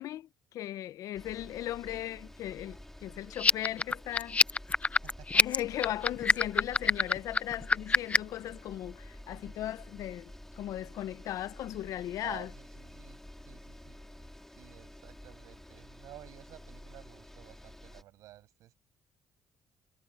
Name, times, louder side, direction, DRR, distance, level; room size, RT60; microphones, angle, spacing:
voice 1, 0.0-4.4 5.3-12.5, left 13 dB, 75° left, 0.6 m, -37 dB
sound 1, 1.1-18.0, left 1 dB, 5° left, 2.1 m, -50 dB
sound 2, 3.3-8.4, left 4 dB, 20° left, 0.4 m, -25 dB
voice 2, 5.0-5.4 12.2-13.2 13.4-18.7, right 15 dB, 80° right, 7.6 m, -52 dB
cardioid pair, 95°, 6 cm